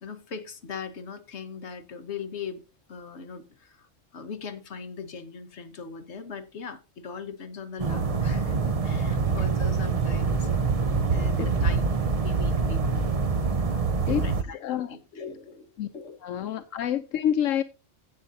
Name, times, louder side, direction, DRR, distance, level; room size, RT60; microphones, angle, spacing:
voice 1, 0.0-2.6 2.9-3.9 4.1-10.5 11.1-13.1 14.0-16.2, left 5 dB, 65° left, 1.5 m, -40 dB
sound 1, 7.8-14.4, right 4 dB, 35° right, 0.7 m, -25 dB
voice 2, 14.6-15.0 15.8-15.9 16.2-17.6, left 10 dB, 85° left, 1.1 m, -27 dB
16.5 x 7.6 x 2.7 m
omnidirectional pair, 1.3 m